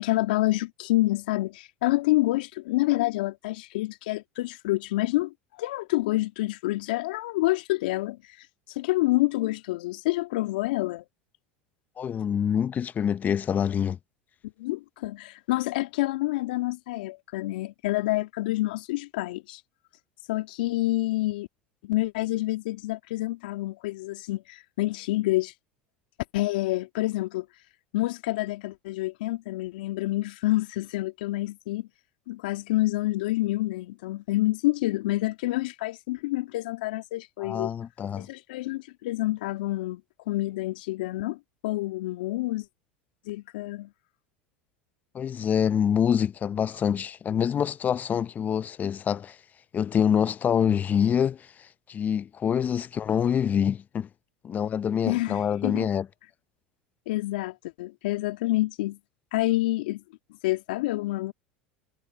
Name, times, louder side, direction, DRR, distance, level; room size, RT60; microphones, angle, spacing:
voice 1, 0.0-11.0 14.6-19.6 20.3-21.5 21.8-25.5 26.3-27.5 27.9-31.9 32.3-37.7 38.2-40.0 40.3-42.7 43.3-43.9 55.1-55.9 57.1-59.0 59.3-60.0 60.4-61.3, left 18 dB, 70° left, 2.5 m, -28 dB
voice 2, 12.0-14.0 37.4-38.3 45.1-49.4 49.7-54.1 54.4-56.1, left 8 dB, 30° left, 1.0 m, -26 dB
hypercardioid pair, 80°, 5 cm